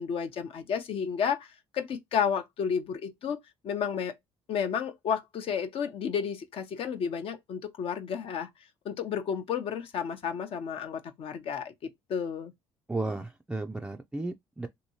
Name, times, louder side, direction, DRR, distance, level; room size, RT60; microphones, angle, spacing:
voice 1, 0.0-1.5 1.7-3.4 3.6-4.1 4.5-8.5 8.8-11.7 12.1-12.5, left 7 dB, 60° left, 0.6 m, -31 dB
voice 2, 12.9-14.7, right 2 dB, 10° right, 0.3 m, -34 dB
2.9 x 2.7 x 2.7 m
supercardioid pair, 80°, 11 cm